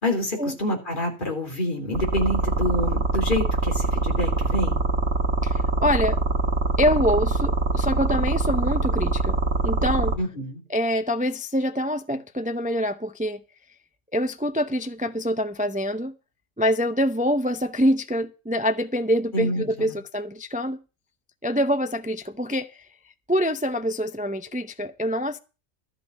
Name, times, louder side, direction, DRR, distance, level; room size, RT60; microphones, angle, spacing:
voice 1, 0.0-4.8 10.2-10.6 19.3-20.0, left 1 dB, 40° left, 3.6 m, -27 dB
sound 1, 1.9-10.1, right 3 dB, 80° right, 2.3 m, -23 dB
voice 2, 5.4-6.2 6.8-9.4 9.6-10.2 10.7-13.4 14.1-16.1 16.6-20.8 21.4-22.9 23.3-25.4, equal, 10° right, 0.5 m, -25 dB
13.0 x 5.9 x 8.1 m
omnidirectional pair, 1.4 m